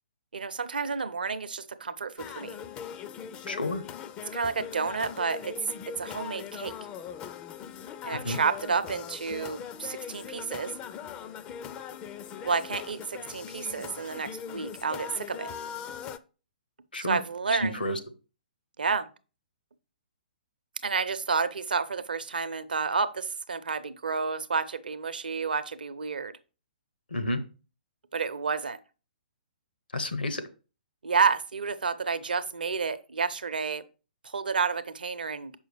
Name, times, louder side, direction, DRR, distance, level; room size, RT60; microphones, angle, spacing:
voice 1, 0.3-2.6 4.3-5.5 6.0-6.7 8.0-10.7 12.4-15.5 17.0-17.7 18.8-19.0 20.8-26.3 28.1-28.8 31.0-33.8 34.2-35.5, right 5 dB, 70° right, 11 dB, 0.6 m, -30 dB
sound 1, 2.2-16.2, left 8 dB, 20° left, 0.4 m, -41 dB
voice 2, 3.5-3.8 8.2-8.4 16.9-17.2 17.5-18.0 27.1-27.4 29.9-30.4, left 1 dB, 80° left, 9 dB, 1.0 m, -30 dB
6.4 x 5.5 x 3.3 m, 0.34 s
figure-of-eight pair, 125°, 5 cm